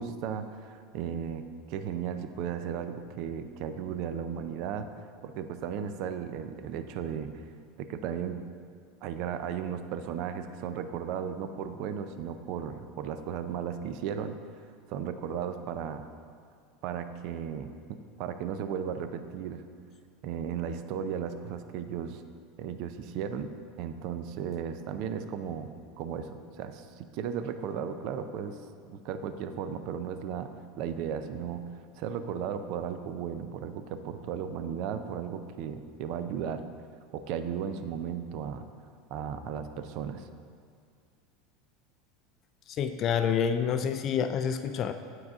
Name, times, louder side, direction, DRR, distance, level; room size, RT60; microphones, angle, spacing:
voice 1, 0.0-4.9 5.2-7.5 7.8-8.4 9.0-14.4 14.9-16.1 16.8-19.6 20.2-22.2 22.6-23.5 23.8-25.7 26.0-28.6 28.8-30.5 30.8-31.6 32.0-36.6 37.1-38.7 39.1-40.3, right 8 dB, 60° right, 9 dB, 0.4 m, -35 dB
voice 2, 42.7-44.9, left 7 dB, 45° left, 8 dB, 0.3 m, -28 dB
7.8 x 4.7 x 3.7 m, 2.2 s
hypercardioid pair, 90°, 0 cm